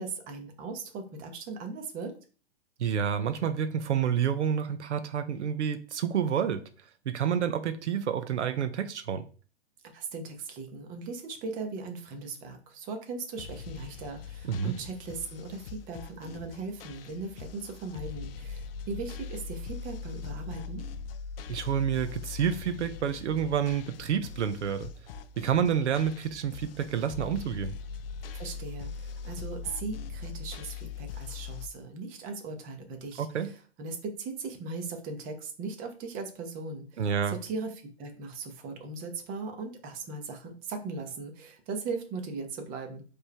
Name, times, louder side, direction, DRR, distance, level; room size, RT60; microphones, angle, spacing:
voice 1, 0.0-2.1 9.8-20.8 28.3-37.7 38.0-43.0, right 4 dB, 25° right, 0.9 m, -38 dB
voice 2, 2.8-6.6 7.1-9.3 14.4-14.7 21.5-24.9 25.4-27.7 33.2-33.5 37.0-37.4, right 8 dB, 90° right, 0.7 m, -29 dB
sound 1, 13.4-31.7, left 5 dB, 55° left, 0.6 m, -41 dB
4.4 x 3.3 x 3.3 m
hypercardioid pair, 135°, 34 cm